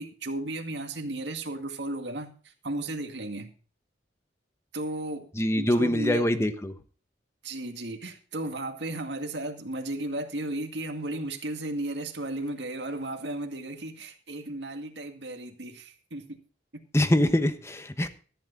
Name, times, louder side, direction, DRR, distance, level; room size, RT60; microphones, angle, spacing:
voice 1, 0.0-3.5 4.7-5.3 5.5-6.3 7.4-16.4 16.7-16.8, right 1 dB, 70° right, 5 dB, 2.1 m, -34 dB
voice 2, 5.3-6.7 16.9-18.1, left 1 dB, 15° left, 9 dB, 1.1 m, -24 dB
14.0 x 10.5 x 4.0 m, 0.39 s
head